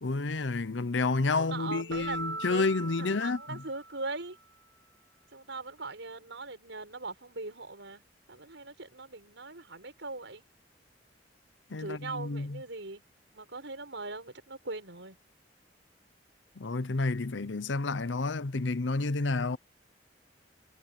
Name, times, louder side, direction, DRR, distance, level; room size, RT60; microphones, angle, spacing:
voice 1, 0.0-3.6 11.7-12.6 16.6-19.6, left 3 dB, 85° left, 0.8 m, -30 dB
voice 2, 1.3-4.4 5.3-8.0 8.3-10.4 11.8-13.0 13.3-15.2, right 3 dB, 85° right, 5.7 m, -40 dB
Keyboard (musical), 1.9-4.3, right 2 dB, 60° right, 1.2 m, -40 dB
head